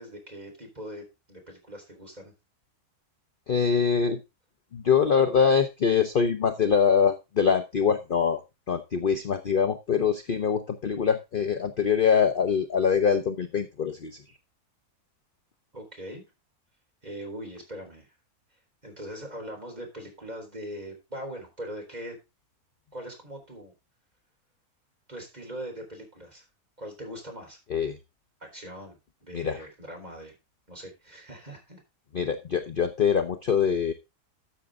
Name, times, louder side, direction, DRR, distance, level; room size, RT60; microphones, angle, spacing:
voice 1, 0.0-2.3 15.7-16.2 17.0-18.1 18.8-22.2 22.9-23.7 25.1-26.4 26.8-27.6 28.4-30.3 30.7-31.8, equal, 25° right, 1 dB, 4.2 m, -41 dB
voice 2, 3.5-4.2 4.7-8.4 8.7-14.2 27.7-28.0 29.3-29.6 32.1-33.9, left 6 dB, 45° left, 8 dB, 0.9 m, -24 dB
13.0 x 6.6 x 3.6 m, 0.25 s
omnidirectional pair, 1.6 m